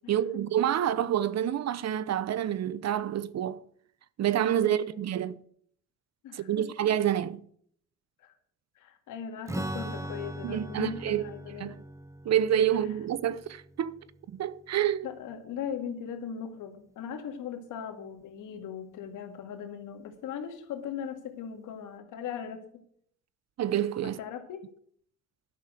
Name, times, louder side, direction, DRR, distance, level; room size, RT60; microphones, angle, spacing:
voice 1, 0.1-3.6 4.2-5.4 6.3-7.4 10.4-11.2 11.6-11.8 12.2-14.0 14.3-15.1 23.6-24.2, right 10 dB, 60° right, 0.8 m, -28 dB
voice 2, 4.6-5.0 6.2-6.7 8.2-8.3 8.8-11.8 15.0-22.8 24.0-24.7, left 7 dB, 85° left, 2.1 m, -39 dB
Strum, 9.5-15.1, right 1 dB, 10° right, 1.0 m, -40 dB
12.0 x 6.6 x 7.6 m
cardioid pair, 90°, 30 cm